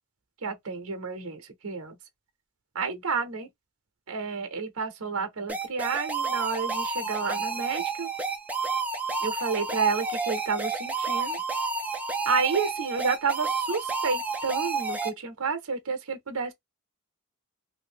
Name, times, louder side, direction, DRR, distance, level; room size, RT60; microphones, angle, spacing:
voice 1, 0.4-2.0 2.7-3.5 4.1-8.1 9.2-11.4 12.3-16.5, right 5 dB, 70° right, 0.7 m, -30 dB
sound 1, 5.5-15.1, right 4 dB, 5° right, 0.5 m, -30 dB
2.7 x 2.6 x 3.5 m
head